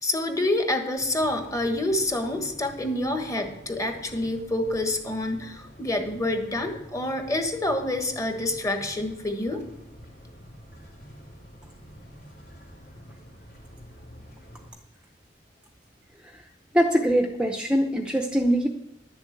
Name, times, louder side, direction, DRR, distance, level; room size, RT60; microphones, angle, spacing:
voice 1, 0.0-9.6, left 1 dB, 20° left, 5 dB, 1.4 m, -27 dB
sound 1, 1.0-14.7, equal, 60° left, 2.6 m, -48 dB
voice 2, 16.7-18.7, equal, 5° right, 4 dB, 0.7 m, -23 dB
11.0 x 7.1 x 8.2 m, 0.85 s
head